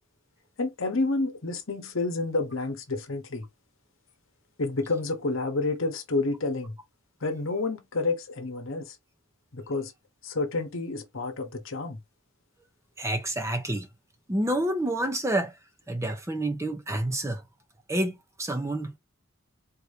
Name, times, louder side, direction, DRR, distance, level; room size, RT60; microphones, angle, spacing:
voice 1, 0.6-3.4 4.6-6.7 7.2-8.9 9.5-9.9 10.2-12.0, left 3 dB, 65° left, 1.0 m, -29 dB
voice 2, 13.0-13.9 14.3-15.5 15.9-17.4 17.9-19.0, right 1 dB, 15° right, 0.6 m, -28 dB
4.3 x 2.7 x 3.3 m
head